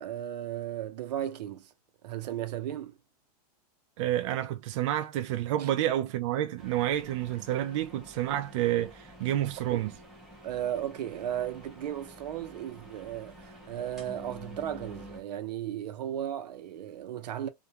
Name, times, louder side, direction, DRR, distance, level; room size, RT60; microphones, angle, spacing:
voice 1, 0.0-1.7 2.0-3.0 5.6-5.7 9.7-9.8 10.4-17.5, right 11 dB, 85° right, 0.7 m, -35 dB
voice 2, 4.0-9.9, right 12 dB, 50° right, 0.4 m, -29 dB
sound 1, 6.6-15.2, equal, ahead, 0.7 m, -49 dB
2.4 x 2.2 x 2.8 m
supercardioid pair, 160°, 21 cm